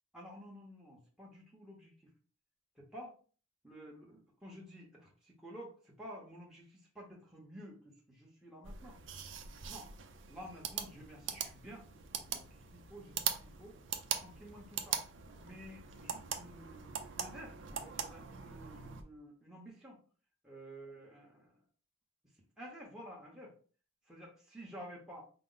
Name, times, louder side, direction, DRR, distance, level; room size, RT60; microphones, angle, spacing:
voice 1, 0.1-1.9 2.8-3.1 3.6-9.0 9.7-9.9 10.3-11.9 12.3-12.5 12.7-13.8 14.1-15.0 15.4-20.0 20.4-21.6 22.6-23.5 24.1-25.2, equal, 5° right, -3 dB, 0.8 m, -51 dB
sound 1, 8.6-19.0, right 8 dB, 75° right, 0.5 m, -42 dB
4.8 x 2.1 x 3.9 m, 0.40 s
head